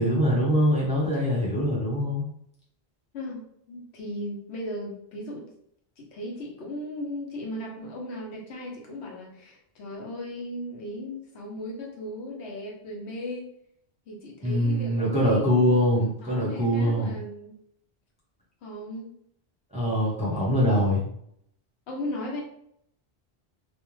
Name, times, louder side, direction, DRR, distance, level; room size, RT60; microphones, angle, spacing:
voice 1, 0.0-2.3 14.4-17.2 19.7-21.0, equal, 10° right, -5 dB, 0.6 m, -23 dB
voice 2, 3.1-5.4 6.0-13.5 14.1-17.5 18.6-19.1 21.9-22.4, left 1 dB, 80° left, -1 dB, 1.0 m, -37 dB
2.5 x 2.1 x 3.0 m, 0.70 s
omnidirectional pair, 1.1 m